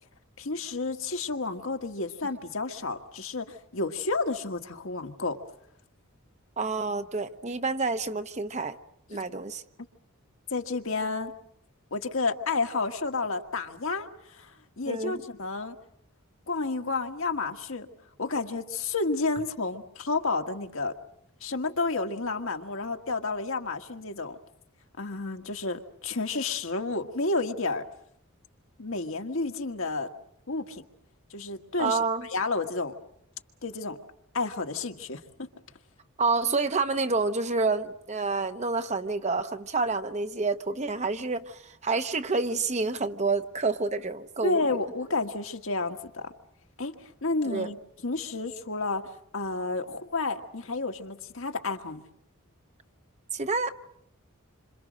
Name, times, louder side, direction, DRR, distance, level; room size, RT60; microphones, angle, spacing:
voice 1, 0.4-5.4 10.5-11.3 11.9-15.7 16.5-17.9 18.2-20.9 21.4-24.4 25.0-27.8 28.8-30.1 30.5-30.8 31.3-32.0 32.3-32.9 33.6-34.0 34.3-35.5 44.4-46.3 46.8-47.7 48.0-52.0, left 3 dB, 65° left, 1.7 m, -31 dB
voice 2, 6.6-8.8 9.1-9.6 14.9-15.2 31.8-32.3 36.2-44.8 47.5-47.7 53.3-53.7, right 3 dB, 35° right, 1.0 m, -28 dB
27.5 x 26.5 x 6.4 m
head